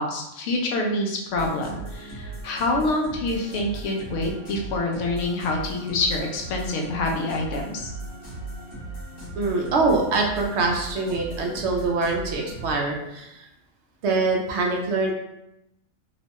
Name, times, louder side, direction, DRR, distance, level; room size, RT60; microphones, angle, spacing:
voice 1, 0.0-7.9, left 2 dB, 70° left, 1 dB, 0.9 m, -26 dB
sound 1, 1.3-12.7, right 2 dB, 50° left, 1.2 m, -37 dB
voice 2, 9.4-13.5 14.0-15.1, right 3 dB, 65° right, 0 dB, 0.8 m, -24 dB
3.0 x 2.1 x 2.8 m, 0.84 s
omnidirectional pair, 1.4 m